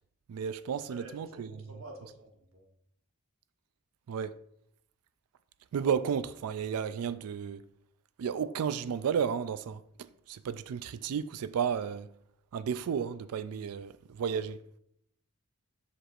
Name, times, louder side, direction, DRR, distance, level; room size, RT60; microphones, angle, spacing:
voice 1, 0.3-1.5 4.1-4.4 5.7-7.6 8.2-9.8 10.3-12.1 12.5-14.6, right 7 dB, 85° right, 0.3 m, -32 dB
voice 2, 0.9-2.7, right 2 dB, 60° right, 1.2 m, -49 dB
7.7 x 6.6 x 2.5 m
head